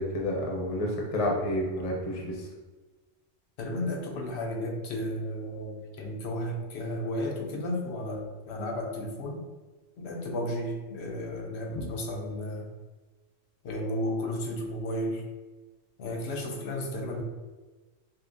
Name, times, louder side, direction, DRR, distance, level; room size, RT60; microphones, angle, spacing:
voice 1, 0.0-2.5 11.7-11.9, left 1 dB, 40° left, -2 dB, 0.6 m, -30 dB
voice 2, 3.6-9.5 10.0-12.7 13.6-15.2 16.0-17.2, left 1 dB, 80° left, 2 dB, 0.9 m, -33 dB
5.3 x 2.0 x 2.5 m, 1.3 s
omnidirectional pair, 1.1 m